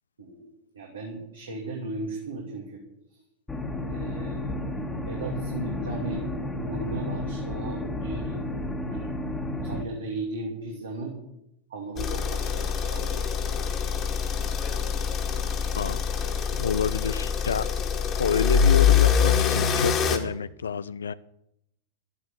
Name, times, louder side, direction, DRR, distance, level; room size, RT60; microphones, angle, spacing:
voice 1, 0.7-2.8 3.9-4.5 5.0-6.3 6.6-8.4 8.9-9.1 9.6-11.1 11.7-13.3, right 3 dB, 70° right, 2.9 m, -36 dB
sound 1, 3.5-9.8, left 1 dB, 10° left, 1.8 m, -32 dB
sound 2, 12.0-20.2, left 7 dB, 30° left, 2.0 m, -24 dB
voice 2, 16.5-17.7 18.2-21.1, left 6 dB, 70° left, 0.5 m, -28 dB
12.0 x 11.0 x 6.8 m
figure-of-eight pair, 90°, 0 cm